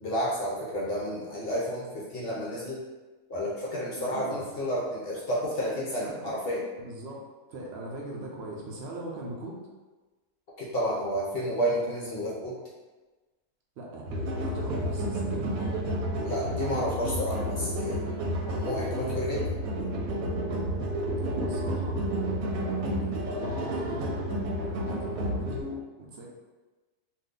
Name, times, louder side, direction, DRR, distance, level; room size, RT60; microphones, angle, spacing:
voice 1, 0.0-2.8 3.3-6.6 10.6-12.5 16.2-18.0 18.5-19.5, equal, 60° left, -5 dB, 0.6 m, -31 dB
voice 2, 4.0-4.5 6.0-6.3 6.8-7.2 7.5-9.6 13.8-15.8 21.2-22.0 22.7-24.3 24.6-26.3, right 1 dB, 65° right, -2 dB, 0.6 m, -40 dB
sound 1, 14.1-25.6, equal, 85° right, 1.1 m, -30 dB
2.6 x 2.4 x 3.6 m, 1.2 s
omnidirectional pair, 1.5 m